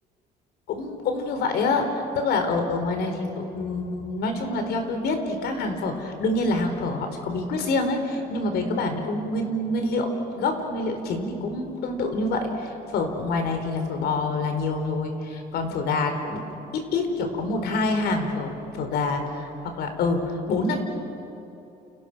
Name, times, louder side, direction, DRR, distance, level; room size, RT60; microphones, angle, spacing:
voice 1, 0.7-16.4 16.7-20.8, left 3 dB, 75° left, 6 dB, 4.4 m, -26 dB
29.5 x 29.5 x 6.3 m, 2.9 s
cardioid pair, 110°, 17 cm